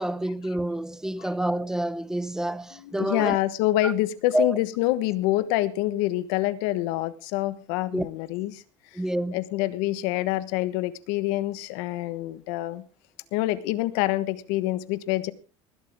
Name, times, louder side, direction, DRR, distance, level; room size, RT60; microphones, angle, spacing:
voice 1, 0.0-3.4 3.8-3.9 4.3-4.6 7.9-8.1 8.9-9.4, right 1 dB, 5° right, 0.6 m, -28 dB
voice 2, 2.7-8.6 9.3-12.8 13.3-15.3, left 16 dB, 80° left, 1.3 m, -26 dB
20.0 x 12.0 x 3.6 m
cardioid pair, 150°, 14 cm